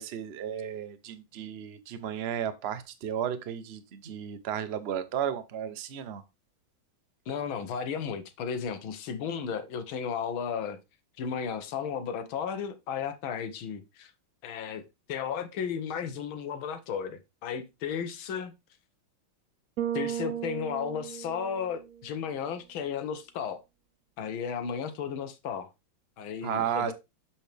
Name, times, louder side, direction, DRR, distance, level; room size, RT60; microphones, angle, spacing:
voice 1, 0.0-6.2 26.4-26.9, right 9 dB, 50° right, 0.8 m, -33 dB
voice 2, 7.3-10.8 11.2-14.1 14.4-14.8 15.1-18.5 19.9-23.6 24.2-25.7 26.2-26.9, left 7 dB, 80° left, 1.8 m, -34 dB
Bass guitar, 19.8-22.1, right 10 dB, 85° right, 0.7 m, -35 dB
7.2 x 5.7 x 3.4 m
omnidirectional pair, 2.2 m